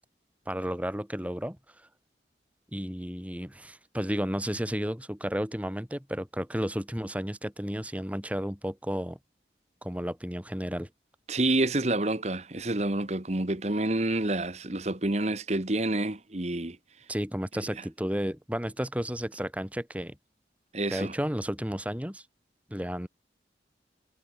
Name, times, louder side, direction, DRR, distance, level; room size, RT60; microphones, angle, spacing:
voice 1, 0.5-1.6 2.7-9.2 9.8-10.9 17.1-20.2 20.9-22.2 22.7-23.1, equal, 10° right, 2.8 m, -32 dB
voice 2, 11.3-16.8 20.7-21.1, right 2 dB, 40° right, 1.4 m, -28 dB
head